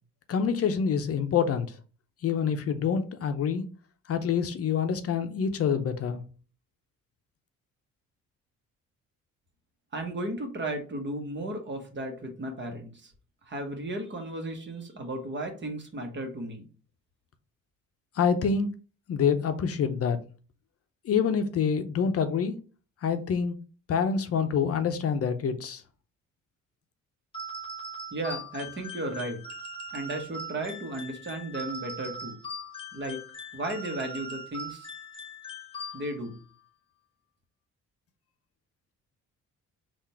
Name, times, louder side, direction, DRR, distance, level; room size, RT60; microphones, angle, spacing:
voice 1, 0.3-1.7 2.2-3.7 4.1-6.2 18.1-18.7 19.1-20.2 21.0-22.6 23.0-23.5 23.9-25.8, left 6 dB, 50° left, 0.6 m, -26 dB
voice 2, 9.9-13.1 13.4-16.7 28.1-29.4 29.9-32.4 32.9-33.2 33.5-34.9 35.9-36.4, right 1 dB, 40° right, 1.2 m, -34 dB
sound 1, 27.3-36.4, equal, 20° left, 1.0 m, -40 dB
3.7 x 2.5 x 4.3 m
cardioid pair, 90°, 30 cm